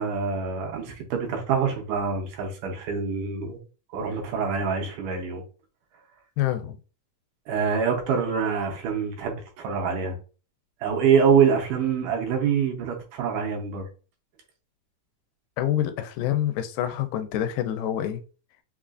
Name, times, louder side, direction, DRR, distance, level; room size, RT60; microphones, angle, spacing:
voice 1, 0.0-3.6 3.9-5.4 7.5-10.2 10.8-13.9, right 6 dB, 75° right, 2.2 m, -25 dB
voice 2, 6.4-6.8 15.6-18.2, left 11 dB, 85° left, 2.2 m, -27 dB
5.4 x 2.4 x 2.4 m
omnidirectional pair, 3.9 m